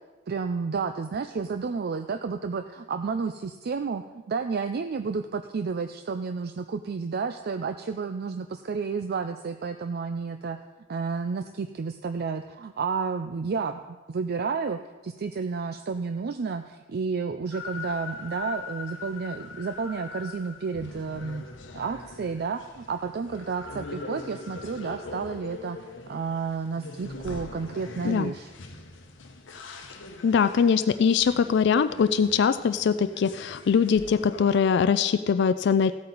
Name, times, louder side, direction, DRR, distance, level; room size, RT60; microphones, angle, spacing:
voice 1, 0.3-10.6 10.9-21.4 21.7-28.5, right 5 dB, 55° right, 9 dB, 0.4 m, -31 dB
sound 1, 17.5-34.6, left 3 dB, 80° left, 1.0 m, -42 dB
voice 2, 30.2-35.9, left 6 dB, 65° left, 11 dB, 0.3 m, -22 dB
15.0 x 8.5 x 4.0 m, 1.3 s
head